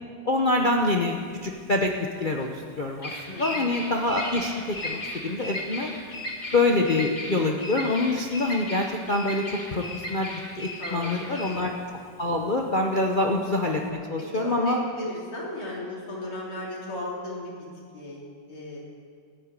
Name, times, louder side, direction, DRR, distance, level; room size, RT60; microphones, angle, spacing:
voice 1, 0.3-1.9 2.2-4.5 4.8-5.9 6.5-11.7 12.2-14.8, left 2 dB, 40° left, 1 dB, 0.7 m, -25 dB
Bird vocalization bird call bird song, 0.6-13.9, left 1 dB, 25° left, 1.9 m, -36 dB
voice 2, 3.3-3.7 10.8-11.5 14.2-17.5 17.9-18.8, left 1 dB, 85° left, -4 dB, 4.2 m, -35 dB
13.5 x 9.1 x 9.8 m, 2.1 s
omnidirectional pair, 2.2 m